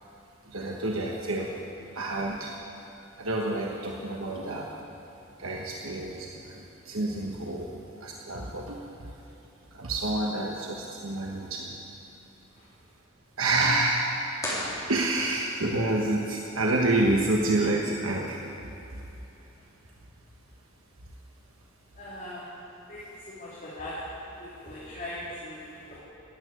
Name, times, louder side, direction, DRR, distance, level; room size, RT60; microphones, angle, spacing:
voice 1, 0.4-1.6 1.9-2.5 3.2-4.8 5.4-7.7 8.0-9.1 9.7-11.8 13.4-14.1 14.9-18.5 18.7-19.0, right 2 dB, 70° right, -1 dB, 1.2 m, -28 dB
sound 1, 14.4-15.6, left 1 dB, 15° left, 3.8 m, -34 dB
voice 2, 21.9-22.5 22.9-24.0 24.2-26.0, left 1 dB, 40° left, -9 dB, 3.1 m, -40 dB
13.0 x 9.1 x 9.8 m, 2.8 s
head